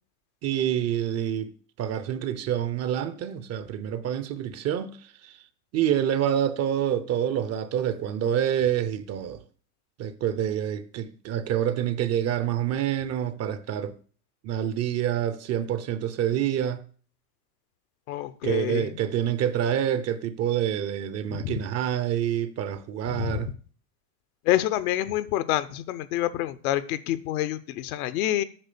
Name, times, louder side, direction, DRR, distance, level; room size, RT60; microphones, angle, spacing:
voice 1, 0.4-5.4 5.7-9.4 10.0-14.0 14.4-16.8 18.4-23.5, right 10 dB, 30° right, 0.7 m, -27 dB
voice 2, 18.1-18.8 21.3-21.5 23.1-23.4 24.5-28.4, left 14 dB, 65° left, 1.0 m, -27 dB
8.8 x 6.1 x 6.8 m
supercardioid pair, 130°, 48 cm